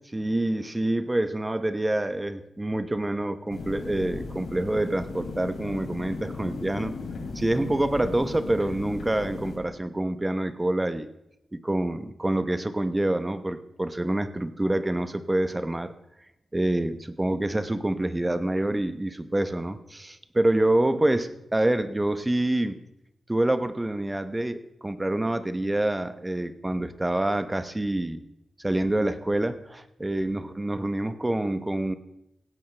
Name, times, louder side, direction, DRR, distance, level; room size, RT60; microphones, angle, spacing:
voice 1, 0.0-6.9 7.3-11.1 11.5-15.9 16.5-22.8 23.3-28.2 28.6-31.9, right 1 dB, 15° right, 11 dB, 0.9 m, -27 dB
sound 1, 3.5-9.6, left 3 dB, 70° left, 3.2 m, -37 dB
17.0 x 16.5 x 3.3 m, 0.85 s
wide cardioid pair, 115°, 0 cm